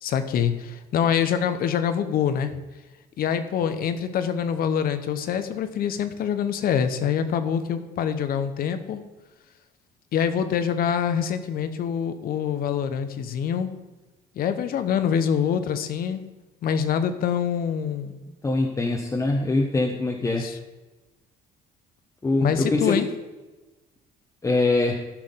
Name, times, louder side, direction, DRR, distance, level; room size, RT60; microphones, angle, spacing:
voice 1, 0.0-2.5 3.2-9.0 10.1-13.8 14.4-16.3 16.6-18.1 20.2-20.6 22.4-23.1, left 8 dB, 60° left, 10 dB, 1.0 m, -25 dB
voice 2, 18.4-20.4 22.2-23.0 24.4-25.0, left 2 dB, 20° left, 0 dB, 1.0 m, -23 dB
14.5 x 6.0 x 3.8 m, 1.1 s
cardioid pair, 110°, 17 cm